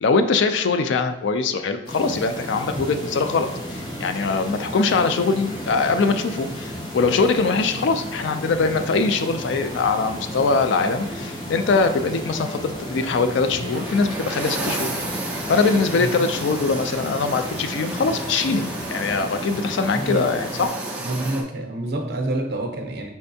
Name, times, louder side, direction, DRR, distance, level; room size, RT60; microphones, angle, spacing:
voice 1, 0.0-14.9 15.5-20.7, left 4 dB, 65° left, 9 dB, 0.3 m, -22 dB
sound 1, 1.9-20.7, equal, 25° left, 0.8 m, -33 dB
sound 2, 13.7-21.4, right 2 dB, 5° right, 0.4 m, -33 dB
voice 2, 21.0-23.1, right 2 dB, 55° right, 4 dB, 0.6 m, -27 dB
4.5 x 3.3 x 2.7 m, 1.0 s
head